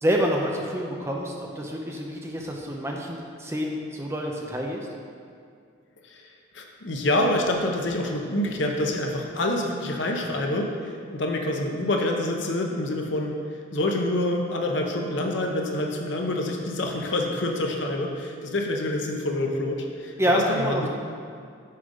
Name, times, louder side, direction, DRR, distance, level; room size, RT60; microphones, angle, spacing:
voice 1, 0.0-4.9 20.2-20.9, equal, 15° right, 0 dB, 0.6 m, -27 dB
voice 2, 6.5-13.3 13.7-20.9, left 1 dB, 65° left, 1 dB, 0.8 m, -27 dB
6.6 x 5.2 x 5.2 m, 2.2 s
head